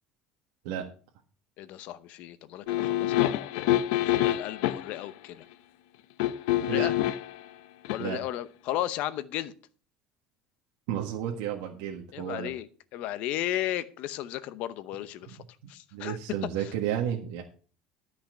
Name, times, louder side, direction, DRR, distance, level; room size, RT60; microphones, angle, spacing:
voice 1, 1.6-5.4 6.6-7.0 7.9-9.5 12.1-15.4 15.7-16.2 16.6-16.7, left 13 dB, 50° left, 0.8 m, -35 dB
sound 1, 2.7-5.0 6.2-7.4 7.8-8.0, left 14 dB, 85° left, 0.7 m, -26 dB
voice 2, 10.9-12.5 15.9-17.4, right 10 dB, 75° right, 1.6 m, -32 dB
13.0 x 5.7 x 6.3 m
cardioid pair, 180°, 3 cm